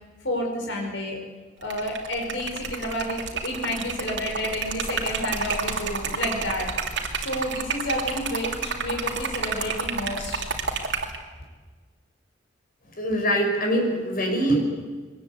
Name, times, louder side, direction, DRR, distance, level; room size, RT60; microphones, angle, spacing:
voice 1, 0.2-1.2 1.6-6.7 7.2-10.5, left 1 dB, 70° left, 0 dB, 5.2 m, -30 dB
Liquid, 1.6-11.2, right 5 dB, 65° right, 2.8 m, -30 dB
voice 2, 13.0-14.6, right 1 dB, 50° left, 2 dB, 6.0 m, -23 dB
23.0 x 19.5 x 8.3 m, 1.4 s
head